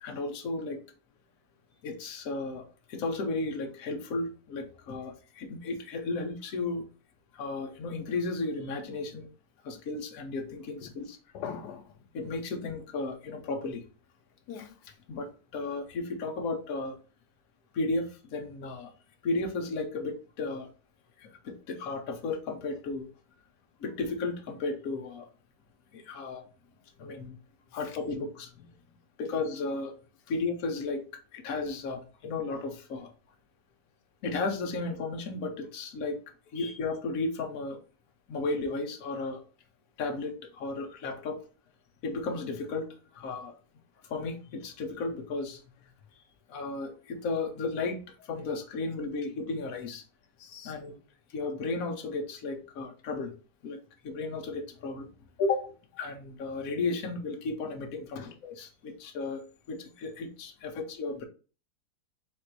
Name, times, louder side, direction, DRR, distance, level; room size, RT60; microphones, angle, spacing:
voice 1, 0.0-0.8 1.8-6.9 7.3-9.3 9.6-11.2 12.1-13.8 15.1-17.0 17.7-18.9 19.2-20.7 21.2-23.1 23.8-25.3 25.9-26.4 27.0-27.4 27.7-28.5 29.2-29.9 30.3-31.0 31.3-33.1 34.2-36.2 36.5-37.8 38.3-39.4 40.0-41.4 42.0-42.9 43.1-43.5 44.0-45.6 46.5-50.0 50.6-51.0 51.3-53.3 53.6-55.1 55.4-55.7 56.0-61.2, left 3 dB, 60° left, 1.2 m, -34 dB
voice 2, 11.3-11.9 14.5-14.9 36.6-36.8 50.4-50.7 58.2-58.3, left 7 dB, 85° left, 1.2 m, -41 dB
4.1 x 2.6 x 4.5 m
omnidirectional pair, 1.8 m